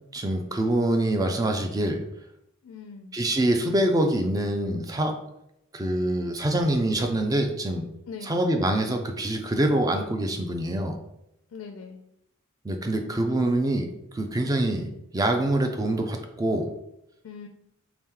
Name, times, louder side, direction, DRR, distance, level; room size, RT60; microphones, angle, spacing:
voice 1, 0.1-2.0 3.1-5.2 5.7-7.9 8.2-11.0 12.6-16.7, right 1 dB, 15° right, 5 dB, 0.4 m, -25 dB
voice 2, 2.6-3.1 8.1-8.5 11.5-12.0 17.2-17.5, left 5 dB, 65° left, 4 dB, 0.3 m, -41 dB
3.4 x 2.9 x 3.7 m, 0.82 s
head